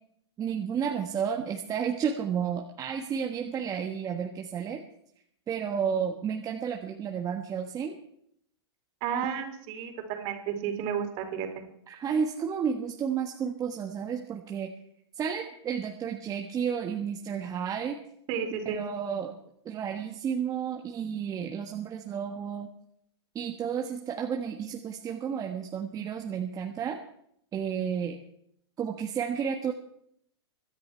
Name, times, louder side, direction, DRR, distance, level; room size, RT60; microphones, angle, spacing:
voice 1, 0.4-4.8 5.5-8.0 11.9-14.7 15.1-18.0 18.6-19.3 19.6-22.7 23.3-27.0 27.5-28.2 28.8-29.7, right 7 dB, 25° right, 2 dB, 1.4 m, -32 dB
voice 2, 9.0-11.6 18.3-18.8, right 8 dB, 45° right, 5 dB, 3.7 m, -32 dB
24.5 x 10.5 x 4.5 m, 0.73 s
hypercardioid pair, 120°, 15 cm